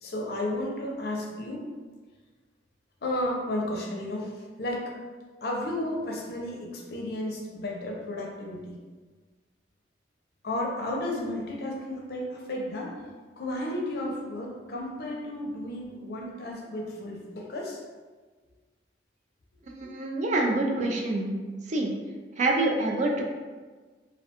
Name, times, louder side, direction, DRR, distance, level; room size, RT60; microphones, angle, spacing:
voice 1, 0.0-1.7 3.0-4.9 5.4-8.8 10.4-13.0 13.4-17.8, left 1 dB, 60° left, -1 dB, 0.5 m, -33 dB
voice 2, 19.6-21.3 21.7-21.9 22.4-23.2, right 2 dB, 40° right, 0 dB, 0.3 m, -26 dB
2.3 x 2.2 x 2.8 m, 1.4 s
head